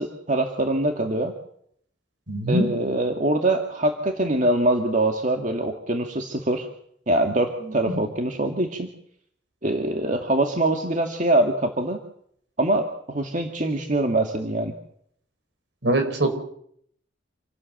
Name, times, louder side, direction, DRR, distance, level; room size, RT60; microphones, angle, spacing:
voice 1, 0.0-1.3 2.5-6.7 7.1-8.9 9.6-12.0 12.6-14.7, right 1 dB, 40° right, 3 dB, 2.0 m, -23 dB
voice 2, 2.3-2.7 7.6-8.0 15.8-16.3, right 1 dB, 70° right, 7 dB, 4.8 m, -23 dB
27.5 x 17.5 x 7.9 m, 0.68 s
head